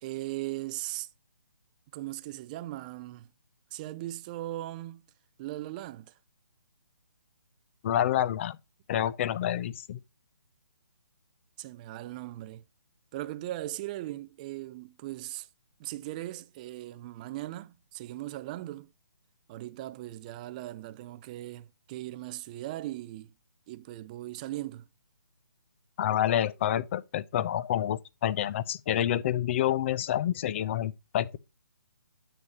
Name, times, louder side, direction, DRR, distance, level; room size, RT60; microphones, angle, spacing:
voice 1, 0.0-1.1 1.9-3.3 3.7-5.0 5.4-6.2 11.6-12.6 13.1-15.5 15.8-18.9 19.5-23.3 23.7-24.9, right 16 dB, 20° right, 0.4 m, -38 dB
voice 2, 7.8-8.6 8.9-10.0 26.0-31.4, left 11 dB, 30° left, 0.5 m, -28 dB
9.5 x 7.0 x 2.8 m
figure-of-eight pair, 150°, 12 cm